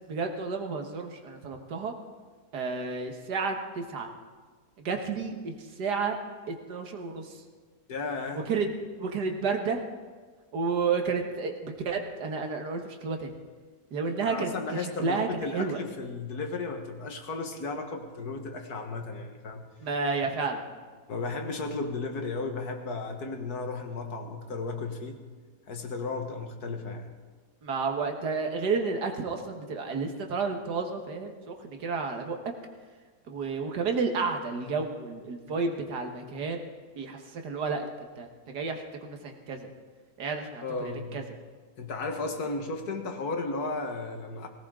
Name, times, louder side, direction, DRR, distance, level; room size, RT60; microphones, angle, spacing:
voice 1, 0.1-1.9 2.5-4.1 4.8-6.2 6.5-7.4 8.3-8.7 9.0-9.8 10.5-13.3 13.9-15.8 19.8-20.7 27.6-32.4 33.3-36.7 37.0-39.7 40.2-41.2, right 4 dB, 90° right, 3 dB, 2.0 m, -31 dB
voice 2, 7.9-8.5 14.3-19.7 20.4-20.6 21.1-25.2 25.7-27.2 40.6-41.2 41.8-44.5, left 3 dB, 75° left, 4 dB, 1.9 m, -34 dB
19.0 x 17.5 x 3.8 m, 1.5 s
omnidirectional pair, 1.7 m